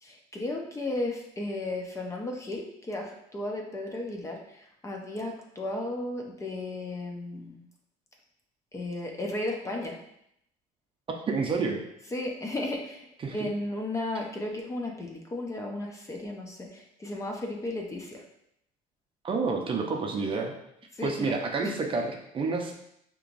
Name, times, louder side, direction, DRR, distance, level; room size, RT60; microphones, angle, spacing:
voice 1, 0.0-7.6 8.7-10.0 12.1-13.1 13.3-18.2 21.0-21.3 21.6-21.8, left 1 dB, 20° left, 1 dB, 0.6 m, -34 dB
voice 2, 11.3-11.8 13.2-13.5 19.2-20.5 21.0-22.7, right 4 dB, 30° right, 2 dB, 0.6 m, -29 dB
5.0 x 2.9 x 2.5 m, 0.76 s
cardioid pair, 125°, 16 cm